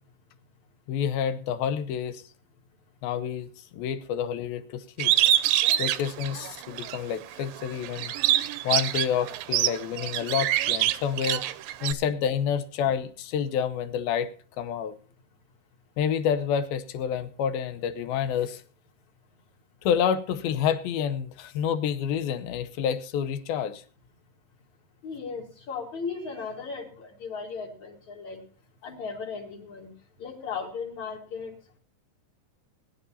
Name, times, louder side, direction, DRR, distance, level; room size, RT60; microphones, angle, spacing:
voice 1, 0.9-2.2 3.0-5.2 5.8-8.1 8.6-11.5 11.8-14.3 14.6-14.9 16.0-18.6 19.8-23.8, left 8 dB, 75° left, 12 dB, 2.7 m, -28 dB
Bird, 5.0-7.0 7.4-11.9, right 13 dB, 80° right, 2.2 m, -25 dB
voice 2, 25.0-28.4 28.8-29.9 30.2-31.5, left 5 dB, 50° left, -2 dB, 4.5 m, -36 dB
21.0 x 11.0 x 2.8 m, 0.41 s
omnidirectional pair, 4.4 m